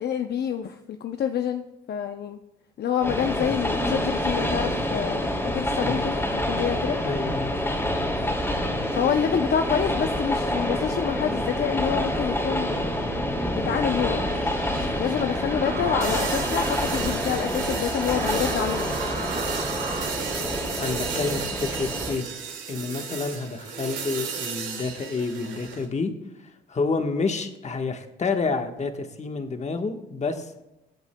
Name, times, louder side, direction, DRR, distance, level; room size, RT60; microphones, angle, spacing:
voice 1, 0.0-2.4 2.8-7.0 8.9-12.9 13.5-14.4 15.0-19.0, left 8 dB, 55° left, 7 dB, 0.7 m, -27 dB
Train, 3.0-22.1, left 1 dB, 10° left, 2.9 m, -27 dB
voice 2, 7.0-7.5 20.8-22.3 22.7-26.1 26.4-30.5, left 4 dB, 35° left, 6 dB, 1.3 m, -29 dB
sound 1, 13.7-20.1, right 4 dB, 45° right, 2.0 m, -37 dB
sound 2, 16.0-25.9, right 6 dB, 75° right, 2.2 m, -33 dB
21.5 x 8.0 x 2.3 m, 0.95 s
cardioid pair, 90°, 20 cm